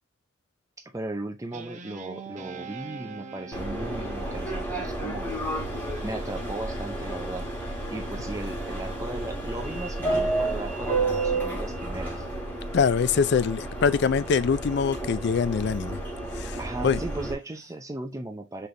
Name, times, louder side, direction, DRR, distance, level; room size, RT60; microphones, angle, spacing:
voice 1, 0.9-5.3 6.0-12.3 16.6-18.7, right 2 dB, 15° right, 0.5 m, -37 dB
Guitar, 1.5-6.3, right 4 dB, 35° right, 0.8 m, -43 dB
Subway metro underground, 3.5-17.3, right 2 dB, 10° left, 1.5 m, -31 dB
voice 2, 12.7-16.0 16.4-17.0, left 6 dB, 55° left, 0.4 m, -24 dB
5.8 x 3.3 x 2.6 m
head